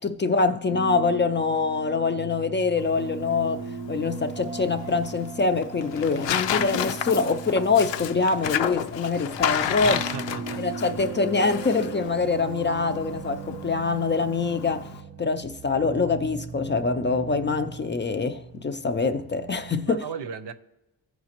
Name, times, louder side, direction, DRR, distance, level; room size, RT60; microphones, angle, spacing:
voice 1, 0.0-10.0 10.6-14.9 15.2-20.0, left 4 dB, 30° left, 0.3 m, -25 dB
sound 1, 0.7-20.0, right 5 dB, 40° right, 0.4 m, -39 dB
Tearing, 2.8-15.0, left 9 dB, 85° left, 0.6 m, -32 dB
voice 2, 9.8-10.6 19.8-20.5, right 6 dB, 70° right, 0.6 m, -35 dB
14.5 x 4.9 x 2.9 m
wide cardioid pair, 115°, 42 cm